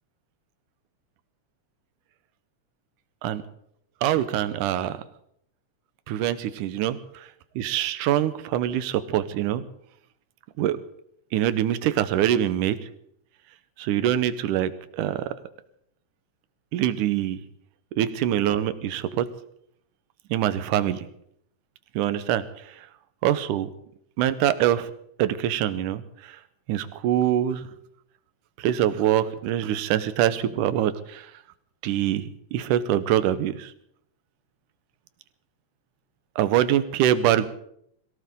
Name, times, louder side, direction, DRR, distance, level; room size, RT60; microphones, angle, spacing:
voice 1, 4.0-5.0 6.1-7.3 7.6-9.6 10.6-10.8 11.3-12.8 13.8-15.3 16.7-17.4 18.0-19.3 20.3-21.1 22.0-22.4 23.2-23.7 24.2-24.9 25.2-26.4 26.7-27.7 28.6-31.3 31.8-33.7 36.4-37.5, right 11 dB, 80° right, 13 dB, 2.4 m, -24 dB
23.0 x 17.0 x 3.7 m, 0.71 s
omnidirectional pair, 3.7 m